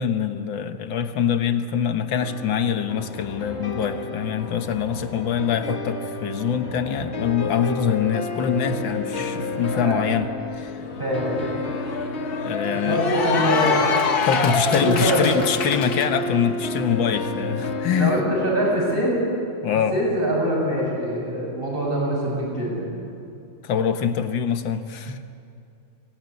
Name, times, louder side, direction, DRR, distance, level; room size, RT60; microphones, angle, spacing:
voice 1, 0.0-10.3 10.5-10.8 12.4-13.0 14.2-18.2 19.6-20.0 23.6-25.2, left 7 dB, 70° left, 9 dB, 1.8 m, -24 dB
sound 1, 2.2-19.0, left 2 dB, 35° left, 1.7 m, -31 dB
Cheering / Applause, 10.6-16.1, left 6 dB, 55° left, 1.7 m, -26 dB
voice 2, 10.8-11.5 12.8-14.1 14.6-15.2 17.9-19.2 19.9-22.9, equal, 25° right, -4 dB, 7.6 m, -24 dB
24.0 x 18.5 x 9.7 m, 2.5 s
omnidirectional pair, 2.2 m